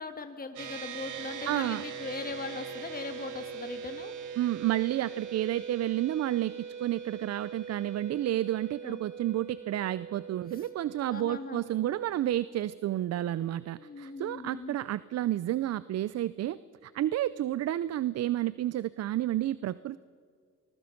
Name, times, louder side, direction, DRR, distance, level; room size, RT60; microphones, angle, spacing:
voice 1, 0.0-4.1 8.8-9.0 10.5-10.6 11.1-11.6 13.7-14.8, left 4 dB, 30° left, 7 dB, 1.5 m, -40 dB
sound 1, 0.6-14.2, right 7 dB, 80° right, 2.4 m, -43 dB
voice 2, 1.5-1.8 4.4-6.5 6.8-20.0, right 13 dB, 55° right, 17 dB, 0.5 m, -30 dB
25.0 x 20.5 x 5.8 m, 2.1 s
cardioid pair, 90°, 30 cm